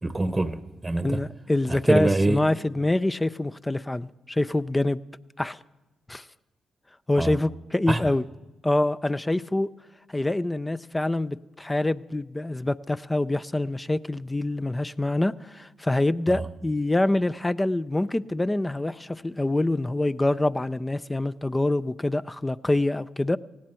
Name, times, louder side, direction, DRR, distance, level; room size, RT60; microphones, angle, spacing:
voice 1, 0.0-1.2 1.7-2.4 7.2-7.3 7.9-8.0 16.3-16.4, right 2 dB, 20° right, 0.9 m, -25 dB
voice 2, 1.0-5.0 5.4-5.6 6.1-6.3 7.1-8.2 8.6-9.7 10.1-23.4, left 2 dB, 15° left, 0.5 m, -25 dB
18.0 x 16.0 x 4.4 m
supercardioid pair, 55°, 0 cm